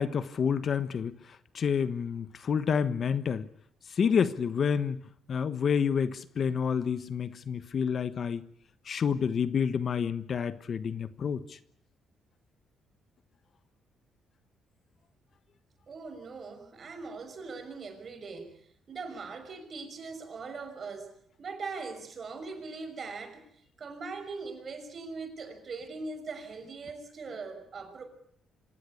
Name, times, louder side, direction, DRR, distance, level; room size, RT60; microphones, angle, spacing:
voice 1, 0.0-3.5 3.9-5.0 5.3-8.4 8.8-11.6, left 7 dB, 50° left, 13 dB, 1.2 m, -29 dB
voice 2, 15.9-18.5 18.9-21.1 21.4-23.4 23.8-28.0, right 4 dB, 45° right, 7 dB, 5.9 m, -40 dB
26.0 x 17.0 x 8.5 m, 0.67 s
cardioid pair, 90°, 0 cm